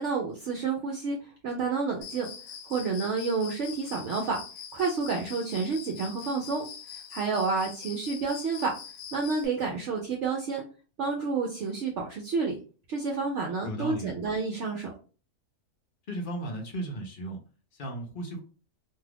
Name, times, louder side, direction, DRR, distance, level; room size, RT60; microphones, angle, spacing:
voice 1, 0.0-2.3 2.6-4.4 4.7-8.7 9.1-10.6 11.0-12.6 12.9-14.9, right 4 dB, 65° right, 1 dB, 0.8 m, -30 dB
Cricket, 2.0-9.5, left 7 dB, 70° left, 1.0 m, -43 dB
voice 2, 13.6-14.1 16.1-17.4 17.8-18.4, right 1 dB, 50° left, 2 dB, 0.6 m, -35 dB
2.6 x 2.4 x 3.3 m, 0.37 s
omnidirectional pair, 1.6 m